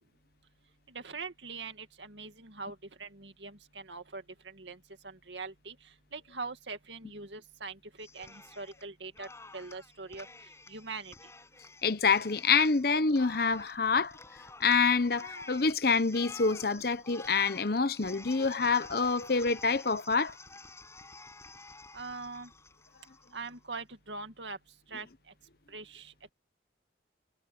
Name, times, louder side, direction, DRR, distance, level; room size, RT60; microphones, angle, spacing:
voice 1, 0.9-4.8 5.0-9.3 9.5-10.3 10.7-11.1 21.9-22.5 23.3-24.6 24.9-25.1 25.7-26.1, right 4 dB, 80° right, 2.2 m, -42 dB
Cheering, 8.0-8.8 9.1-23.5, left 3 dB, 15° left, 6.9 m, -50 dB
voice 2, 11.8-14.2 14.6-20.3, left 4 dB, 55° left, 0.9 m, -27 dB
head